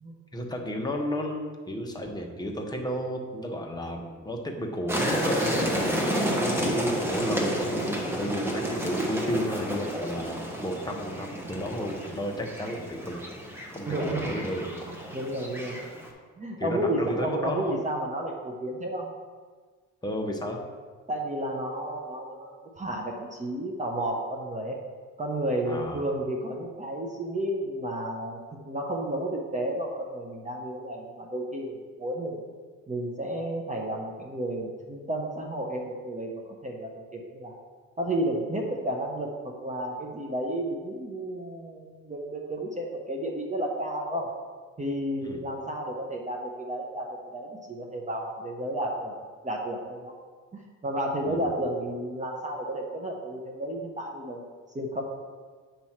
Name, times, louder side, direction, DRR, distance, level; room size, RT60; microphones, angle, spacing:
voice 1, 0.3-5.9 6.5-13.2 13.7-14.6 16.6-17.8 20.0-20.6 25.7-26.0 45.2-45.4 51.2-51.4, equal, 15° left, 1 dB, 1.2 m, -32 dB
sound 1, 4.9-16.1, equal, 10° right, 1.3 m, -30 dB
voice 2, 13.9-14.4 14.9-15.8 16.4-19.1 21.1-24.8 25.2-32.4 32.9-37.6 38.0-44.3 44.8-49.1 49.4-50.1 50.5-54.4 54.7-55.0, right 1 dB, 25° right, 0 dB, 1.0 m, -32 dB
8.4 x 3.1 x 5.8 m, 1.5 s
cardioid pair, 90°, 30 cm